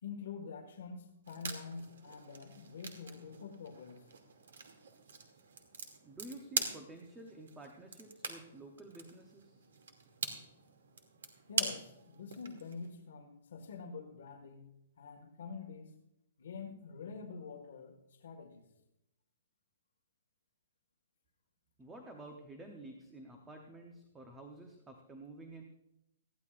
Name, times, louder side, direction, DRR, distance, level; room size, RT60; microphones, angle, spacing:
voice 1, 0.0-4.1 11.5-15.9 16.4-18.7, left 5 dB, 55° left, 1 dB, 1.7 m, -46 dB
sound 1, 1.2-12.9, right 5 dB, 90° right, 2.4 m, -43 dB
voice 2, 6.0-9.6 21.8-25.6, right 2 dB, 5° right, 2 dB, 0.8 m, -51 dB
19.5 x 14.5 x 2.5 m, 0.86 s
hypercardioid pair, 180°, 0 cm